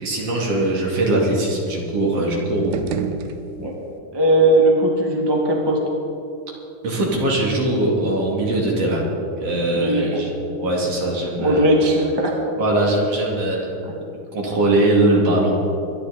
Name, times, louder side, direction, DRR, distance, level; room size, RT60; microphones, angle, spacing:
voice 1, 0.0-2.9 6.8-9.0 9.4-10.3 10.6-11.6 12.6-13.7 14.3-15.5, right 1 dB, 50° right, -3 dB, 3.3 m, -21 dB
sound 1, 2.5-4.0, right 8 dB, 80° right, 2.1 m, -30 dB
voice 2, 4.1-5.8 9.7-10.2 11.4-12.4 13.8-13.9, right 1 dB, 15° right, -1 dB, 0.9 m, -18 dB
24.0 x 10.5 x 4.1 m, 2.7 s
omnidirectional pair, 3.7 m